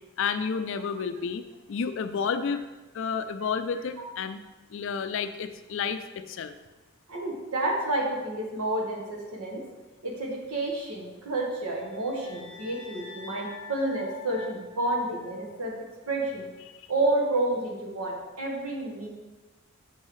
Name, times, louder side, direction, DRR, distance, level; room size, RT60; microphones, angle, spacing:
voice 1, 0.2-2.6 2.9-4.4 4.7-6.5, left 6 dB, 60° left, 10 dB, 0.4 m, -31 dB
voice 2, 7.1-9.6 10.0-15.7 16.1-16.5 16.9-19.1, right 2 dB, 80° right, -1 dB, 1.4 m, -30 dB
sound 1, 11.5-15.8, left 4 dB, 25° left, 0.7 m, -46 dB
7.3 x 5.4 x 3.2 m, 1.2 s
head